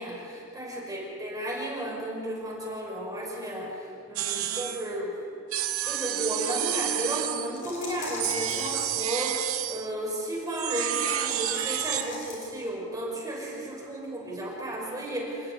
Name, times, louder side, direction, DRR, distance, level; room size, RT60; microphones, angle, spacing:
voice 1, 0.0-5.2 5.8-15.5, right 1 dB, 20° right, -3 dB, 5.4 m, -34 dB
sound 1, 4.2-4.9 5.5-7.6 8.2-9.9 10.5-12.1, right 12 dB, 80° right, 1.0 m, -30 dB
sound 2, 7.5-9.2 10.9-12.6, left 2 dB, 40° left, 5.7 m, -39 dB
28.5 x 11.5 x 9.7 m, 2.8 s
head